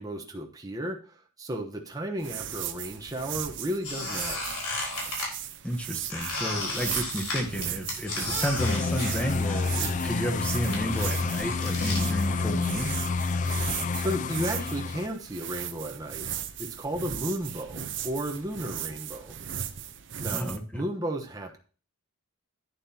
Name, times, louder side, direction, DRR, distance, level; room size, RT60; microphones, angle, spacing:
voice 1, 0.0-4.6 13.9-16.3 16.6-19.4 20.2-21.6, equal, 15° right, 2 dB, 1.0 m, -34 dB
sound 1, 2.2-20.6, right 10 dB, 55° right, 0.8 m, -37 dB
Squeak, 3.8-5.3 6.1-9.8 10.1-12.0, left 2 dB, 90° left, 4.2 m, -34 dB
voice 2, 5.6-12.9 20.3-20.8, equal, 5° left, 3 dB, 1.1 m, -31 dB
sound 2, 8.6-15.1, left 4 dB, 35° left, 0.4 m, -29 dB
11.0 x 9.5 x 2.9 m, 0.38 s
head